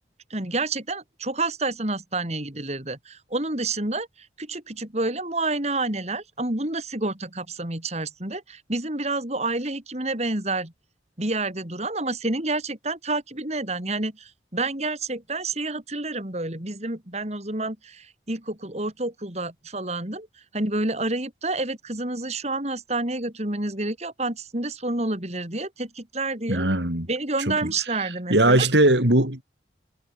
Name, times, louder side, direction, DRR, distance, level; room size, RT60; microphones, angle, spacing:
voice 1, 0.3-10.7 11.2-20.3 20.5-26.7 27.1-28.7, right 2 dB, 35° right, 3.6 m, -29 dB
voice 2, 26.5-27.1 27.5-27.6 28.3-29.4, right 1 dB, 80° right, 5.7 m, -19 dB
head